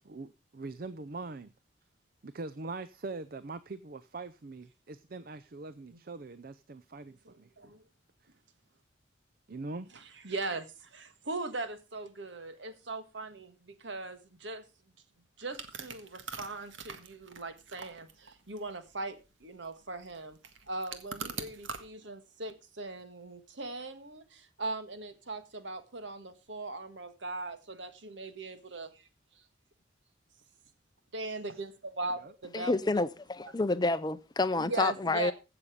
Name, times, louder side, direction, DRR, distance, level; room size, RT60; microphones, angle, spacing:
voice 1, 0.0-1.5 2.2-7.5 9.5-9.9 31.5-31.6 32.1-32.3, right 3 dB, 50° right, 0.6 m, -42 dB
voice 2, 7.2-7.8 10.2-14.6 15.4-20.4 20.7-28.9 31.1-32.7 34.6-35.3, right 2 dB, 70° right, 1.7 m, -39 dB
sound 1, 15.5-21.8, right 5 dB, 85° right, 1.7 m, -44 dB
voice 3, 32.5-35.3, left 3 dB, 20° left, 0.5 m, -29 dB
15.5 x 6.9 x 5.1 m
head